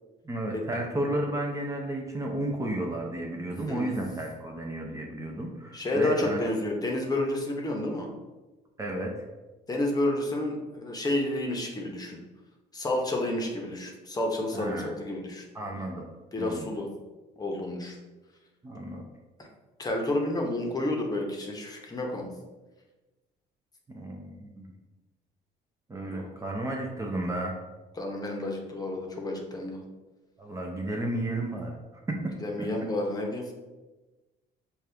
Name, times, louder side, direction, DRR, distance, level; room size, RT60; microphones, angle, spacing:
voice 1, 0.2-6.4 8.8-9.3 14.5-14.9 15.5-16.0 16.4-16.7 18.6-19.1 23.9-24.7 25.9-27.6 30.4-32.3 32.6-32.7, right 1 dB, 20° right, 0 dB, 0.5 m, -33 dB
voice 2, 5.7-8.1 9.7-12.2 12.7-15.4 16.3-16.9 17.4-18.0 19.8-22.3 26.1-26.3 28.0-29.8 32.4-33.4, left 1 dB, 20° left, 1 dB, 0.8 m, -30 dB
5.2 x 2.4 x 3.3 m, 1.2 s
cardioid pair, 110°, 17 cm